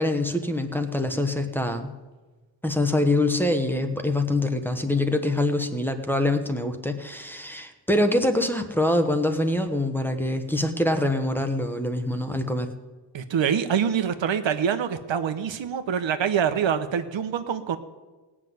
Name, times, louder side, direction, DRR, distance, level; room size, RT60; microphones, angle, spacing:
voice 1, 0.0-1.9 2.6-12.7, left 1 dB, 5° left, 7 dB, 1.1 m, -24 dB
voice 2, 13.1-17.8, right 8 dB, 90° right, 9 dB, 1.1 m, -25 dB
18.0 x 6.2 x 9.4 m, 1.3 s
wide cardioid pair, 130°, 44 cm